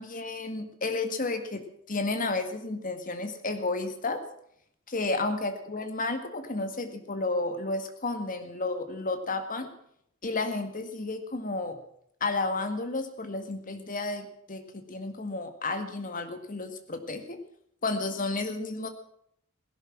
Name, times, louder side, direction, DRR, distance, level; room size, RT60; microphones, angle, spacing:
voice 1, 0.0-4.2 4.9-9.7 10.2-11.8 12.2-17.4 17.8-18.9, left 3 dB, 40° left, 8 dB, 1.9 m, -32 dB
17.0 x 11.0 x 7.5 m, 0.69 s
head